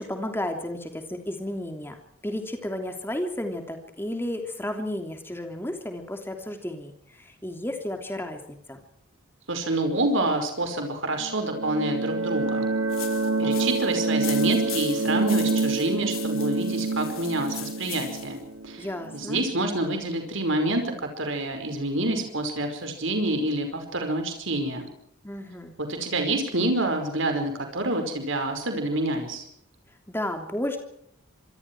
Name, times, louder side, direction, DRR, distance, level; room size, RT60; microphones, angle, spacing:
voice 1, 0.0-2.0 2.2-8.8 13.4-13.7 18.8-19.4 25.2-25.7 30.1-30.8, left 1 dB, 10° left, 5 dB, 3.1 m, -33 dB
voice 2, 9.5-12.7 13.4-18.4 18.6-18.9 19.1-24.9 25.8-29.4, right 2 dB, 65° right, 5 dB, 5.1 m, -27 dB
sound 1, 11.2-19.8, right 3 dB, 85° right, 2.0 m, -27 dB
sound 2, 12.9-18.4, left 13 dB, 75° left, 3.5 m, -39 dB
26.0 x 24.5 x 4.7 m, 0.70 s
head